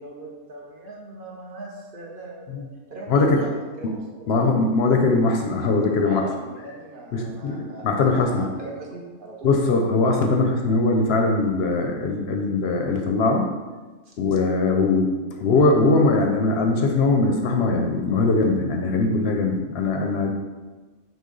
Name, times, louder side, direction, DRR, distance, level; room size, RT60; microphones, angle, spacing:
voice 1, 0.0-3.5 3.8-4.4 6.0-9.5 14.1-14.2, right 2 dB, 50° right, -2 dB, 0.8 m, -39 dB
voice 2, 3.1-3.5 3.8-3.9 4.3-6.2 7.1-8.5 9.4-13.5 14.2-20.3, left 3 dB, 65° left, 2 dB, 0.7 m, -21 dB
6.1 x 2.3 x 3.8 m, 1.3 s
omnidirectional pair, 1.4 m